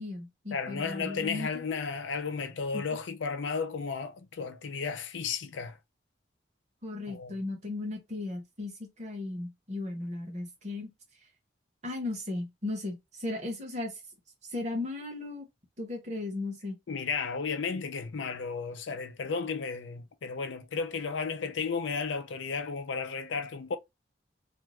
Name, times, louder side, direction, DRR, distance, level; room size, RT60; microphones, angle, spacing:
voice 1, 0.0-1.5 2.7-2.8 6.8-10.9 11.8-13.9 14.5-15.5 15.8-16.8, left 2 dB, 40° right, 1.0 m, -36 dB
voice 2, 0.5-5.8 7.1-7.3 16.9-23.8, left 5 dB, 85° left, 0.5 m, -33 dB
2.6 x 2.3 x 3.1 m
head